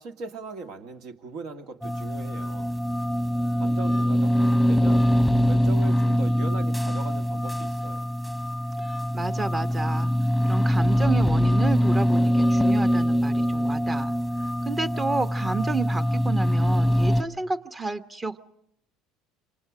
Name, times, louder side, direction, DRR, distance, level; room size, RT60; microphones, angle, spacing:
voice 1, 0.0-2.7 3.6-5.1 5.5-8.0, right 4 dB, 60° right, 6 dB, 2.1 m, -39 dB
sound 1, 1.8-17.2, equal, ahead, 1.3 m, -23 dB
voice 2, 9.1-10.1 10.4-14.1 14.6-18.4, right 3 dB, 25° right, 11 dB, 1.3 m, -30 dB
27.5 x 26.0 x 5.0 m, 0.74 s
hypercardioid pair, 70°, 0 cm